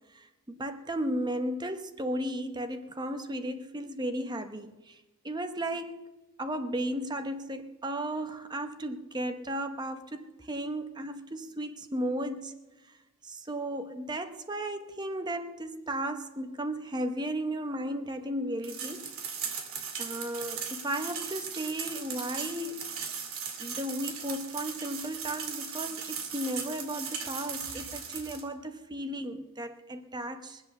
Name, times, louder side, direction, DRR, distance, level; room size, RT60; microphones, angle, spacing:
voice 1, 0.1-4.9 5.2-6.0 6.4-12.5 13.2-19.0 20.0-22.8 23.6-30.6, right 1 dB, 20° right, 0.8 m, -35 dB
sound 1, 18.6-28.4, right 6 dB, 75° right, 2.4 m, -38 dB
22.0 x 8.2 x 6.9 m
head